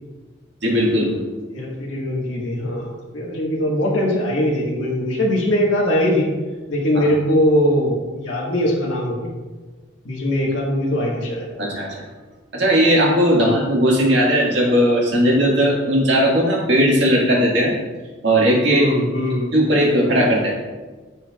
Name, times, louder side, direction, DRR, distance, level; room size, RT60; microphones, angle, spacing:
voice 1, 0.6-1.2 6.9-7.1 11.6-12.0 12.5-17.8 18.2-18.8 19.5-20.5, equal, 60° right, -3 dB, 1.8 m, -17 dB
voice 2, 1.5-6.3 6.7-9.3 10.0-11.5 13.3-13.6 18.6-19.5, left 1 dB, 70° left, -3 dB, 1.5 m, -21 dB
13.0 x 4.5 x 2.4 m, 1.3 s
head